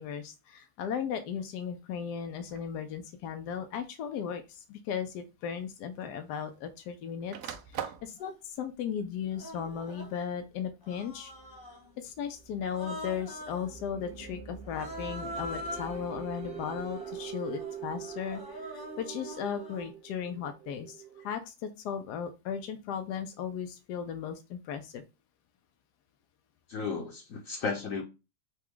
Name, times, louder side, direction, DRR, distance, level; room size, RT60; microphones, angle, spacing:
voice 1, 0.0-11.3 12.0-25.0, left 7 dB, 85° left, 1.2 m, -36 dB
sound 1, 2.5-2.8 3.8-3.9 5.3-5.4 5.7-6.8 7.1-8.1, right 9 dB, 80° right, 1.1 m, -40 dB
Human voice, 8.2-8.3 9.3-10.2 10.8-11.9 12.6-13.7 14.6-19.9, left 1 dB, 15° left, 0.9 m, -43 dB
sound 2, 11.0-21.3, right 8 dB, 50° right, 0.8 m, -45 dB
voice 2, 26.7-28.0, left 5 dB, 60° left, 1.1 m, -34 dB
5.8 x 2.3 x 3.6 m
omnidirectional pair, 1.7 m